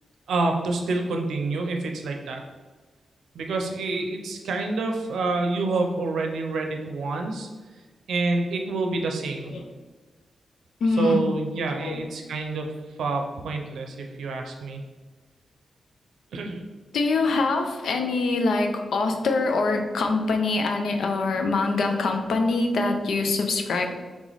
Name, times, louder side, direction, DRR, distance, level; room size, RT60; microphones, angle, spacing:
voice 1, 0.3-2.4 3.3-7.5 8.1-9.5 11.0-12.7 13.0-14.8 16.3-16.6, right 3 dB, 85° right, 3 dB, 0.6 m, -27 dB
voice 2, 10.8-11.2 11.8-12.0 16.9-23.9, left 3 dB, 80° left, 5 dB, 0.5 m, -24 dB
3.6 x 3.1 x 4.0 m, 1.3 s
cardioid pair, 60°, 0 cm